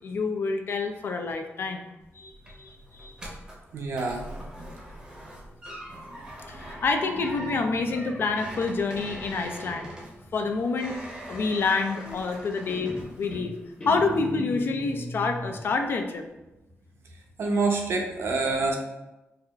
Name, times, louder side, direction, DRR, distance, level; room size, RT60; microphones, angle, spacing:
voice 1, 0.0-1.9 2.1-3.2 6.5-9.9 10.3-11.0 11.3-13.5 13.8-16.2, left 4 dB, 50° left, 5 dB, 0.3 m, -28 dB
sound 1, 2.0-13.6 13.9-14.4 14.8-14.9, right 1 dB, 15° right, 0.7 m, -42 dB
voice 2, 3.7-4.4 17.4-18.8, right 3 dB, 60° right, 2 dB, 0.5 m, -26 dB
Guitar, 6.9-10.5 12.0-12.4 12.7-15.6, left 1 dB, 25° left, 0.9 m, -37 dB
4.6 x 2.4 x 2.3 m, 0.99 s
wide cardioid pair, 145°, 5 cm